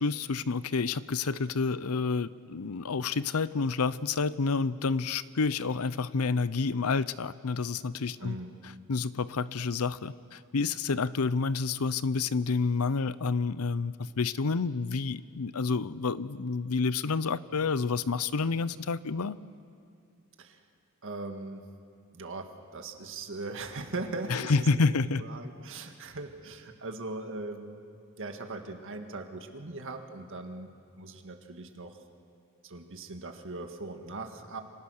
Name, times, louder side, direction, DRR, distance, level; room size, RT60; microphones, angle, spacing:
voice 1, 0.0-8.4 8.9-19.4 24.3-25.3, left 4 dB, 75° left, 17 dB, 0.7 m, -29 dB
voice 2, 8.2-8.5 20.4-20.6 21.0-21.7 22.1-24.8 25.2-27.8 28.2-30.7 31.0-32.0 32.6-34.6, right 2 dB, 60° right, 5 dB, 1.9 m, -39 dB
28.0 x 25.0 x 6.5 m, 2.3 s
head